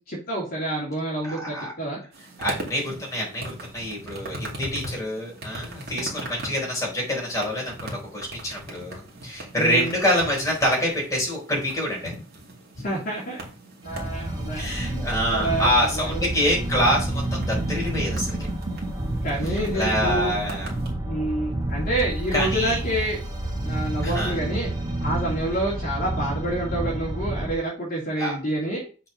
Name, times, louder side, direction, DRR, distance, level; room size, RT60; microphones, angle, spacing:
voice 1, 0.1-2.0 9.6-10.0 12.8-13.4 13.8-16.2 19.2-20.3 21.1-23.2 23.6-24.7 25.0-28.9, right 1 dB, 45° left, -5 dB, 2.7 m, -28 dB
voice 2, 1.2-1.7 2.4-12.1 12.8-12.9 14.5-18.4 19.7-20.7 22.3-22.8 24.0-24.4 28.2-28.4, equal, 15° left, -3 dB, 4.3 m, -26 dB
sound 1, 2.1-20.9, right 1 dB, 50° right, 2.5 m, -39 dB
sound 2, 13.9-27.5, right 1 dB, 20° right, 1.0 m, -29 dB
6.5 x 4.8 x 5.5 m, 0.36 s
head